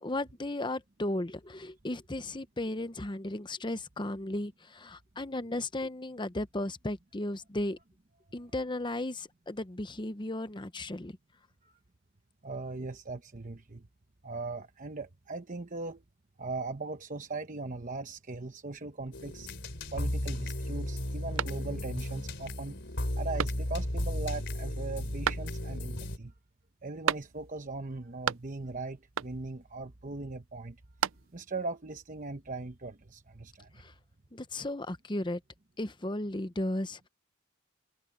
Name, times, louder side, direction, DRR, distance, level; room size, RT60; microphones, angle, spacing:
voice 1, 0.0-7.8 8.3-11.2 33.8-33.9 34.3-35.4 35.8-37.1, left 1 dB, 20° left, 0.9 m, -35 dB
voice 2, 12.4-13.9 14.2-16.0 16.4-19.5 19.9-22.8 23.2-26.3 26.8-30.8 31.3-33.7, right 3 dB, 40° right, 1.0 m, -39 dB
sound 1, 19.1-26.2, left 1 dB, 55° left, 4.2 m, -34 dB
sound 2, 21.4-22.1 22.5-22.6 23.4-24.0 25.2-25.9 27.0-27.7 27.9-28.8 29.1-29.6 30.6-31.6, right 8 dB, 70° right, 0.5 m, -35 dB
head